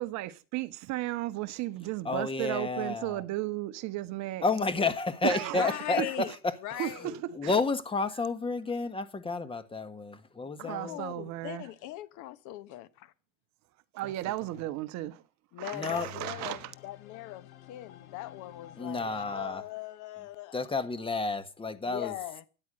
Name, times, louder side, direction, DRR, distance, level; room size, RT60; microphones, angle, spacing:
voice 1, 0.0-4.4 5.2-6.1 6.8-7.5 10.6-11.7 13.9-15.2 15.6-16.7, right 16 dB, 40° right, 1.0 m, -34 dB
voice 2, 2.0-3.2 4.4-6.5 7.0-7.1 7.3-11.0 14.0-14.1 15.7-16.1 18.8-19.6 20.5-22.1, left 3 dB, 10° left, 1.5 m, -31 dB
voice 3, 5.6-6.3 6.6-7.2 10.4-13.1 15.5-20.6 21.8-22.4, left 15 dB, 45° left, 1.2 m, -40 dB
sound 1, 15.9-21.6, left 9 dB, 75° left, 1.7 m, -52 dB
13.0 x 9.9 x 6.5 m
hypercardioid pair, 105°, 43 cm